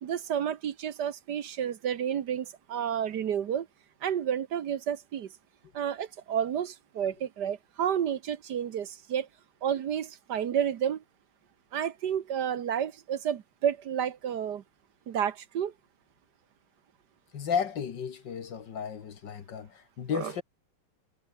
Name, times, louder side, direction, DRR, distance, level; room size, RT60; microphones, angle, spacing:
voice 1, 0.0-3.7 4.0-5.3 5.7-9.3 9.6-11.0 11.7-14.6 15.1-15.7 20.1-20.3, right 9 dB, 55° right, 1.5 m, -30 dB
voice 2, 17.3-20.4, left 7 dB, 55° left, 2.1 m, -33 dB
omnidirectional pair, 2.4 m